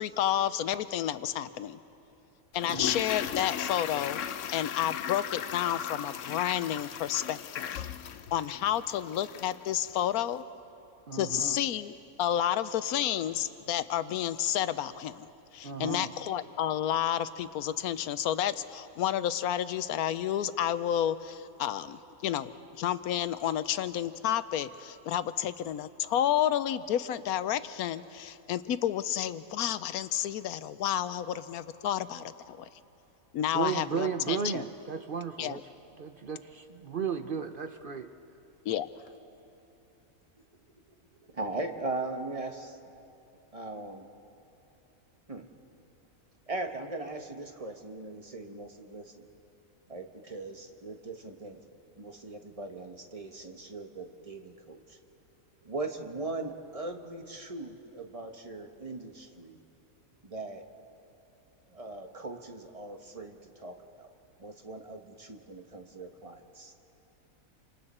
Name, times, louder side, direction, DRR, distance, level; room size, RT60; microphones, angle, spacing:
voice 1, 0.0-1.8 2.5-4.3 4.5-7.8 8.3-10.4 11.1-15.3 15.5-32.7 33.3-34.6 35.4-35.6 38.6-38.9, left 11 dB, 85° left, 14 dB, 1.1 m, -30 dB
Toilet flush, 2.5-9.6 9.9-10.0, left 9 dB, 65° left, 0.9 m, -37 dB
voice 2, 2.7-3.0 11.1-11.6 15.6-16.1 33.5-35.6 36.0-38.1, right 6 dB, 50° right, 8 dB, 0.7 m, -34 dB
voice 3, 40.6-42.8 43.5-44.1 45.3-45.5 46.5-49.3 49.9-51.7 52.0-55.0 55.6-59.6 60.2-60.7 61.7-64.1 64.4-66.7, right 2 dB, 25° right, 5 dB, 1.2 m, -39 dB
29.0 x 25.5 x 4.3 m, 2.9 s
omnidirectional pair, 1.5 m